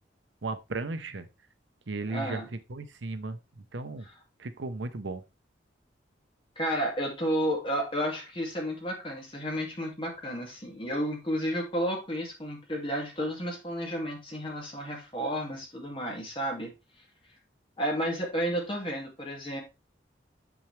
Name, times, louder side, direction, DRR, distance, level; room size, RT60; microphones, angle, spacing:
voice 1, 0.4-1.3 1.9-4.1 4.4-5.2, right 3 dB, 75° right, 0.8 m, -36 dB
voice 2, 2.1-2.5 6.6-16.7 17.8-19.6, equal, 25° left, 2.3 m, -32 dB
7.0 x 6.1 x 3.2 m
head